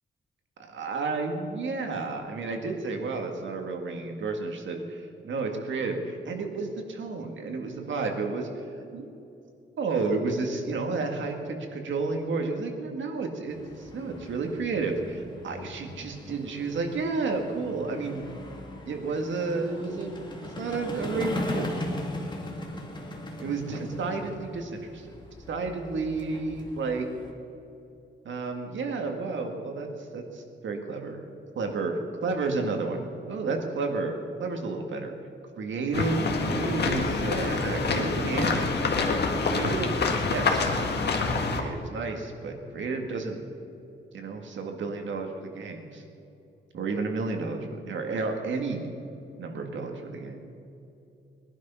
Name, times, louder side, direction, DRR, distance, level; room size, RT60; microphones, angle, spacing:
voice 1, 0.6-8.6 8.9-9.1 9.8-18.2 18.9-21.7 23.4-25.1 25.5-27.1 28.2-29.9 30.1-31.2 31.6-35.1 35.6-39.1 39.4-40.8 41.5-43.4 44.1-46.0 46.7-48.8 49.4-50.4, right 3 dB, 80° right, 3 dB, 2.0 m, -31 dB
sound 1, 13.5-27.3, left 1 dB, 25° left, 2.0 m, -39 dB
sound 2, 35.9-41.6, left 4 dB, 60° left, 1.8 m, -26 dB
21.0 x 11.5 x 5.7 m, 2.8 s
wide cardioid pair, 150°, 19 cm